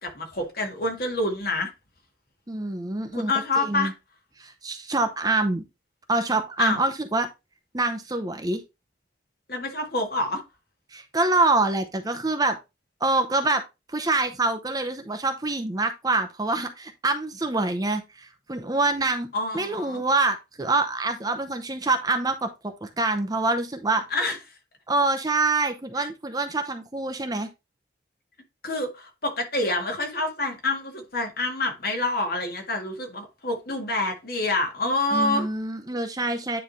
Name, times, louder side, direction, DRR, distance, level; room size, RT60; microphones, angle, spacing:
voice 1, 0.0-1.7 3.1-3.9 6.6-6.8 9.5-10.4 19.3-20.0 24.1-24.4 28.6-35.5, left 2 dB, 55° left, 1.9 m, -27 dB
voice 2, 2.5-3.9 4.4-5.6 6.1-7.3 7.7-8.6 10.9-12.6 13.0-13.6 13.9-19.3 19.5-24.0 24.9-27.5 35.1-36.6, right 2 dB, 20° right, 0.7 m, -25 dB
9.7 x 3.3 x 4.1 m
head